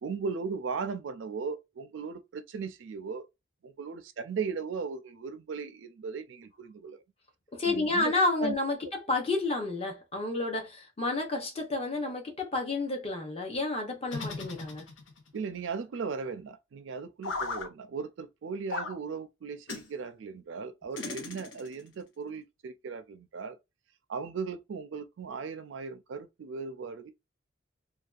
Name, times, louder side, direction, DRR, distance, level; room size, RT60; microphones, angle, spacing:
voice 1, 0.0-3.3 3.6-7.0 7.7-8.1 8.4-8.6 15.3-23.6 24.1-27.1, right 5 dB, 70° right, 0.4 m, -37 dB
voice 2, 7.5-14.9 21.0-21.1, left 2 dB, 30° left, 0.6 m, -30 dB
sound 1, 14.1-15.3 17.2-17.7 18.7-19.0 19.7-19.9 21.0-21.8, left 3 dB, 75° left, 0.6 m, -37 dB
2.5 x 2.2 x 2.3 m
head